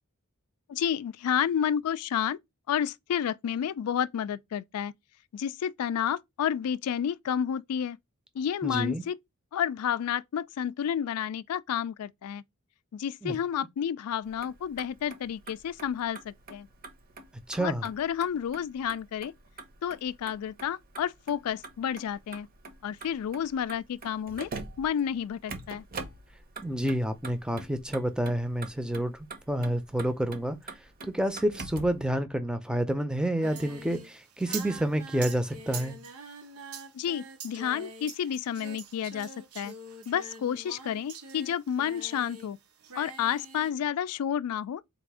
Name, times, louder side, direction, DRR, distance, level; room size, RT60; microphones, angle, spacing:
voice 1, 0.7-2.4 2.7-4.9 5.3-8.0 8.4-9.2 9.5-12.4 12.9-16.7 17.6-19.3 19.8-22.5 22.8-24.5 24.8-25.8 36.9-39.3 39.6-39.7 40.1-42.6 43.0-44.8, left 9 dB, 90° left, 0.3 m, -30 dB
voice 2, 8.6-9.0 13.2-13.3 17.5-17.8 26.6-29.1 29.5-30.6 31.1-36.0, right 1 dB, 5° right, 0.5 m, -29 dB
Motor vehicle (road), 14.3-32.0, right 3 dB, 40° right, 0.8 m, -45 dB
Singing, 33.4-42.5 42.8-43.7, right 4 dB, 85° right, 1.0 m, -44 dB
4.0 x 2.5 x 4.7 m
head